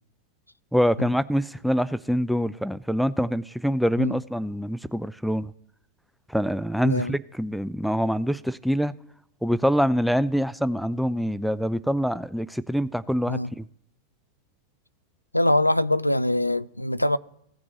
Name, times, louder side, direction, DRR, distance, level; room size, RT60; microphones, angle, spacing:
voice 1, 0.7-5.5 6.3-8.9 9.4-13.7, equal, ahead, 0.3 m, -25 dB
voice 2, 15.3-17.2, left 1 dB, 85° left, 0.4 m, -23 dB
16.5 x 5.9 x 2.9 m
figure-of-eight pair, 90°, 0 cm